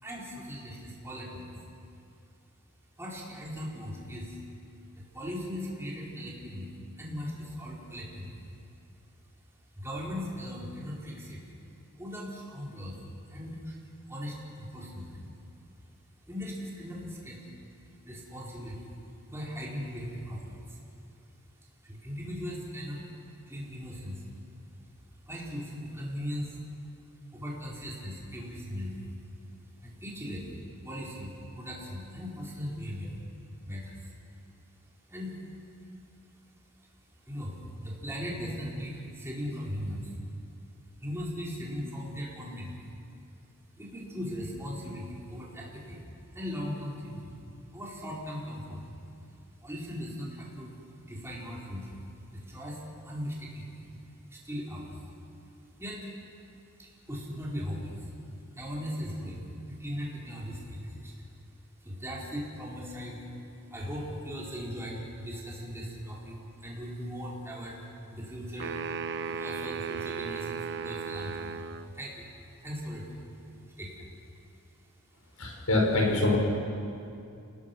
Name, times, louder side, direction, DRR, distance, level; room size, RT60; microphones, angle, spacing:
voice 1, 0.0-1.6 3.0-4.4 5.0-8.4 9.8-11.4 12.0-13.0 13.3-13.8 14.1-15.2 16.3-17.4 18.0-18.9 19.3-20.8 21.8-23.0 23.5-24.3 25.3-26.6 27.3-29.0 29.8-30.6 30.8-33.2 33.6-34.1 35.1-35.4 37.3-40.1 41.0-42.8 43.8-46.0 46.3-47.4 47.7-48.8 49.6-50.7 51.0-52.0 52.3-53.9 54.3-55.0 55.8-56.1 56.8-61.1 61.8-63.2 63.7-67.8 68.1-68.8 69.2-72.3 72.6-73.2 73.6-74.1, equal, 10° right, -5 dB, 4.5 m, -38 dB
sound 1, 68.6-71.9, right 6 dB, 55° right, 0.7 m, -35 dB
voice 2, 75.4-76.4, left 2 dB, 85° left, -1 dB, 5.5 m, -24 dB
28.0 x 19.0 x 6.1 m, 2.6 s
head